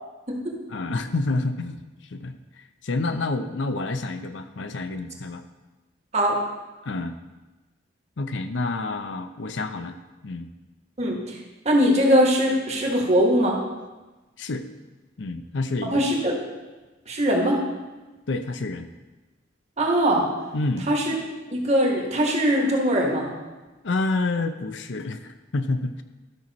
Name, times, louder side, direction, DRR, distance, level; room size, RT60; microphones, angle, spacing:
voice 1, 0.7-1.8 2.1-5.4 6.8-7.2 8.2-10.0 10.2-10.5 14.4-14.7 15.2-16.0 18.3-18.9 20.5-20.9 23.8-26.0, left 2 dB, 70° left, 9 dB, 0.6 m, -28 dB
voice 2, 11.0-11.4 11.6-13.6 15.9-16.4 17.1-17.6 19.8-20.3 20.9-21.1 21.5-23.3, equal, 35° right, 0 dB, 1.5 m, -21 dB
12.5 x 6.0 x 4.1 m, 1.2 s
head